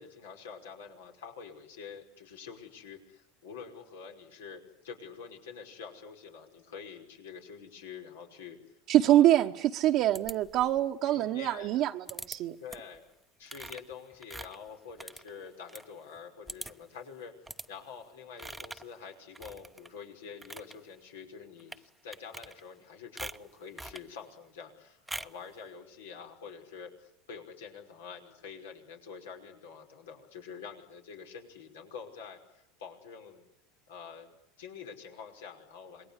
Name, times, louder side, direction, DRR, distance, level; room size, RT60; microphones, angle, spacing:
voice 1, 0.0-8.6 9.0-9.4 11.1-11.8 12.6-13.0 13.4-17.3 17.7-33.4 33.9-34.3 34.6-36.1, left 6 dB, 80° left, 2 dB, 5.4 m, -47 dB
voice 2, 8.9-12.6, right 13 dB, 55° right, 1 dB, 1.2 m, -25 dB
sound 1, 10.1-10.8 12.1-12.4 12.7-13.0 13.5-15.9 16.2-16.3 16.5-16.9 17.5-17.7 18.4-18.9 19.3-19.9 20.3-20.7 21.6-21.8 22.1-22.8 23.2-24.1 25.1-25.4, right 2 dB, 5° right, 1.0 m, -43 dB
27.5 x 21.5 x 9.9 m, 0.79 s
hypercardioid pair, 85°, 0 cm